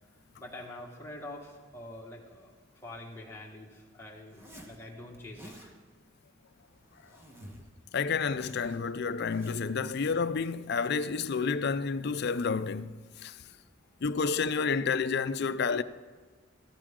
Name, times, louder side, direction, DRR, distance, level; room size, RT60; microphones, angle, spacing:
voice 1, 0.4-5.7 13.4-13.7, left 1 dB, 10° left, 1.7 m, -46 dB
Zipper (clothing), 4.3-4.8 5.1-5.7 6.6-7.7 8.0-9.7, equal, 10° right, 1.5 m, -51 dB
voice 2, 7.9-13.4 14.0-15.8, left 5 dB, 55° left, 0.5 m, -30 dB
14.0 x 13.5 x 3.7 m
head